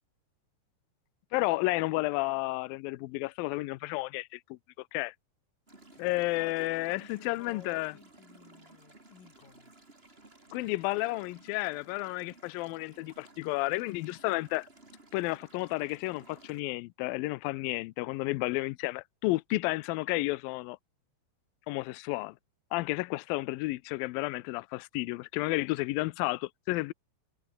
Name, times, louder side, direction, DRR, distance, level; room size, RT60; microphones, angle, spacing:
voice 1, 1.3-4.6 4.9-5.1 6.0-7.9 10.5-14.7 15.1-20.8 21.7-22.4 22.7-26.9, left 21 dB, 90° left, 2.1 m, -32 dB
voice 2, 5.7-9.7, left 7 dB, 55° left, 5.3 m, -54 dB
sound 1, 5.7-16.6, right 2 dB, 15° right, 3.4 m, -56 dB
omnidirectional pair, 4.8 m